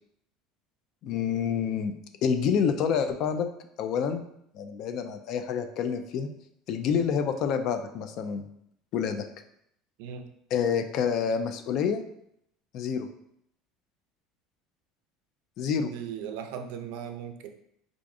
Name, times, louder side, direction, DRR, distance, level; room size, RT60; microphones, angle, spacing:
voice 1, 1.0-1.9 2.2-3.5 3.8-4.2 4.5-6.3 6.7-8.5 8.9-9.3 10.5-12.0 12.7-13.1 15.6-15.9, left 7 dB, 50° left, 8 dB, 0.3 m, -27 dB
voice 2, 10.0-10.3 15.8-17.5, right 8 dB, 75° right, 7 dB, 0.4 m, -38 dB
4.6 x 2.4 x 2.5 m, 0.72 s
cardioid pair, 155°, 0 cm